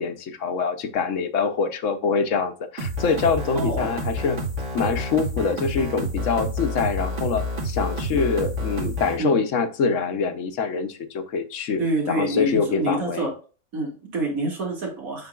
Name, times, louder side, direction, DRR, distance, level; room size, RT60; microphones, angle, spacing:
voice 1, 0.0-4.4 4.7-11.8 12.1-13.3, left 5 dB, 65° left, 9 dB, 1.1 m, -25 dB
sound 1, 2.8-9.2, equal, 60° right, 1.9 m, -29 dB
voice 2, 3.5-3.9 9.2-9.4 11.8-13.3 13.7-15.3, right 2 dB, 85° right, -1 dB, 2.6 m, -27 dB
7.4 x 5.6 x 2.4 m, 0.36 s
omnidirectional pair, 1.4 m